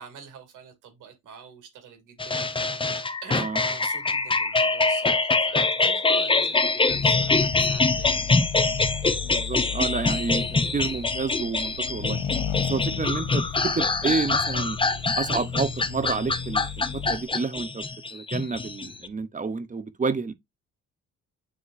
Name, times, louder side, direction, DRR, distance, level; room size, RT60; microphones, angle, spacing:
voice 1, 0.0-2.5 3.2-8.4 12.7-12.9, right 6 dB, 90° right, 2.8 m, -45 dB
sound 1, 2.2-19.1, left 3 dB, 15° left, 0.7 m, -24 dB
Accelerating revving vroom, 6.9-17.3, left 7 dB, 80° left, 1.1 m, -34 dB
voice 2, 9.2-10.5 10.7-12.2 12.6-14.8 15.2-17.8 18.1-20.3, right 4 dB, 25° right, 0.8 m, -29 dB
9.9 x 3.7 x 2.6 m
cardioid pair, 90°, 30 cm